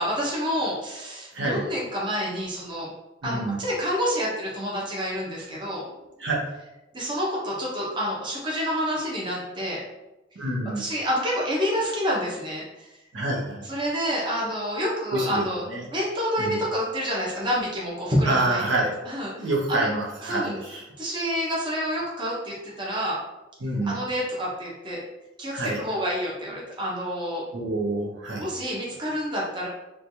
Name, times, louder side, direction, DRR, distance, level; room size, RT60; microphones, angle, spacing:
voice 1, 0.0-2.9 3.2-5.8 6.9-9.8 10.8-12.9 13.6-15.6 15.9-19.9 20.3-20.6 21.0-23.2 23.8-25.0 25.4-27.4 28.4-29.7, equal, 25° right, -5 dB, 0.7 m, -28 dB
voice 2, 1.3-1.7 3.2-3.6 6.2-6.4 10.4-10.8 13.1-13.7 15.1-15.9 16.4-16.6 18.2-18.9 19.4-20.8 23.6-24.0 25.5-25.8 27.5-28.5, right 2 dB, 75° right, -2 dB, 0.7 m, -27 dB
3.0 x 2.2 x 2.7 m, 0.98 s
head